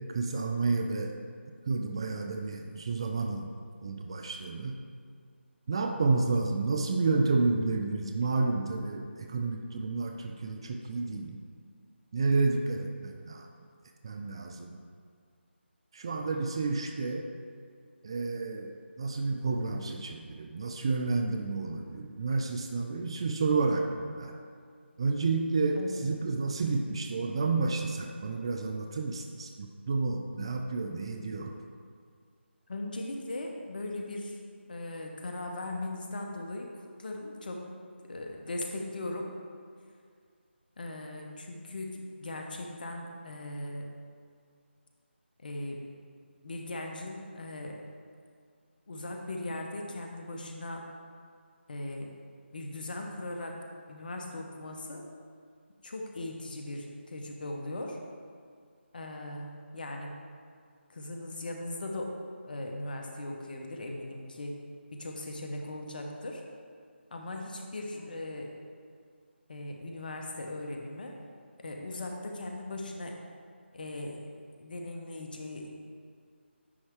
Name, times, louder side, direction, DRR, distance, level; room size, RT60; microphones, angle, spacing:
voice 1, 0.1-1.2 1.7-3.5 3.8-4.7 5.7-11.4 12.1-13.5 14.0-14.8 15.9-17.3 18.0-24.4 25.0-31.5, right 3 dB, 25° right, 4 dB, 0.3 m, -30 dB
voice 2, 32.7-34.4 34.7-37.7 38.0-39.3 40.8-43.9 45.4-45.8 46.4-47.8 48.9-50.8 51.7-52.1 52.5-53.6 53.9-55.0 55.8-58.0 58.9-60.1 60.9-62.2 62.4-64.6 64.9-66.4 67.1-68.5 69.5-71.2 71.6-73.2 73.7-74.3 74.6-75.7, left 2 dB, 50° left, 2 dB, 0.9 m, -39 dB
9.9 x 4.2 x 3.5 m, 2.1 s
figure-of-eight pair, 160°, 6 cm